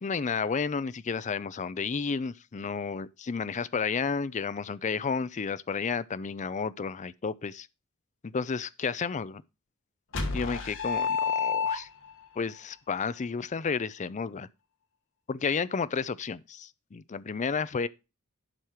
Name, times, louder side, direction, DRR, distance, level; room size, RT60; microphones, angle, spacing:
voice 1, 0.0-7.7 8.2-9.4 10.3-11.9 12.4-14.5 15.3-17.9, left 5 dB, 35° left, 0.5 m, -32 dB
sound 1, 10.1-12.2, left 5 dB, 60° left, 2.3 m, -29 dB
11.5 x 4.9 x 4.4 m
head